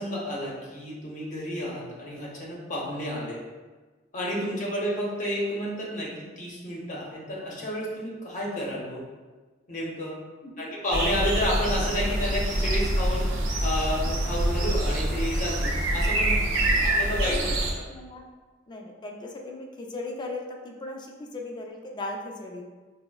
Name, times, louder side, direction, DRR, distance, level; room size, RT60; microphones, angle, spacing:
voice 1, 0.0-3.4 4.1-9.0 9.7-10.2 10.6-17.8, equal, 40° left, -4 dB, 0.7 m, -31 dB
sound 1, 10.9-17.7, right 1 dB, 85° right, 0.5 m, -25 dB
voice 2, 16.7-17.5 17.8-18.2 18.7-22.6, left 2 dB, 25° left, 1 dB, 0.3 m, -38 dB
5.0 x 2.0 x 2.2 m, 1.3 s
head